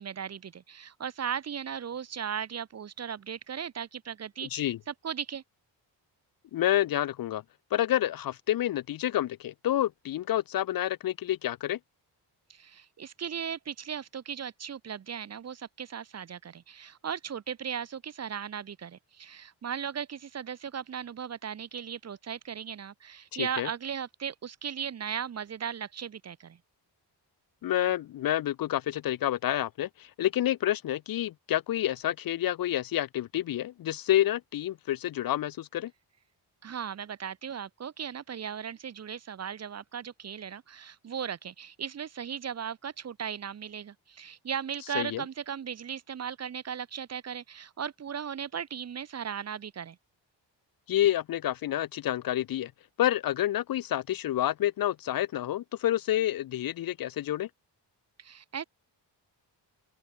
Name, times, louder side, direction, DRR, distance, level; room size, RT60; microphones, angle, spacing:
voice 1, 0.0-5.4 12.5-26.6 36.6-50.0 58.2-58.6, right 8 dB, 35° right, 0.7 m, -37 dB
voice 2, 4.4-4.8 6.5-7.4 7.7-11.8 23.3-23.7 27.6-35.9 44.9-45.2 50.9-52.7 53.0-57.5, left 12 dB, 55° left, 0.5 m, -28 dB
open air
wide cardioid pair, 165°, 43 cm